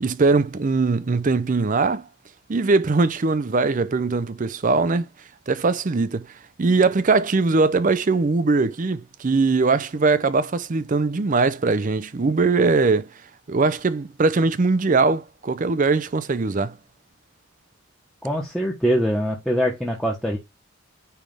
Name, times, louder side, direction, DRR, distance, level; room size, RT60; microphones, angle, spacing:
voice 1, 0.0-2.1 2.5-5.1 5.5-6.3 6.6-13.1 13.5-16.8, right 3 dB, 35° right, 0.5 m, -21 dB
voice 2, 18.2-20.4, equal, ahead, 1.1 m, -23 dB
9.1 x 3.4 x 3.4 m
head